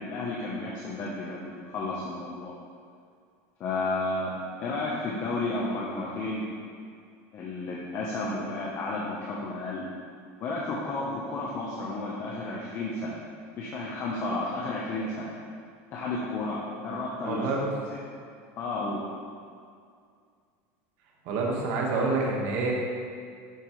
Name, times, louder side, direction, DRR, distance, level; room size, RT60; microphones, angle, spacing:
voice 1, 0.0-2.5 3.6-4.3 4.6-6.4 7.3-9.8 10.4-13.2 13.5-15.3 15.9-17.5 18.6-19.0, left 2 dB, 35° left, -4 dB, 1.0 m, -32 dB
voice 2, 17.2-17.7 21.2-22.7, right 3 dB, 55° right, -2 dB, 1.7 m, -27 dB
10.5 x 7.3 x 3.3 m, 2.2 s
cardioid pair, 165°, 7 cm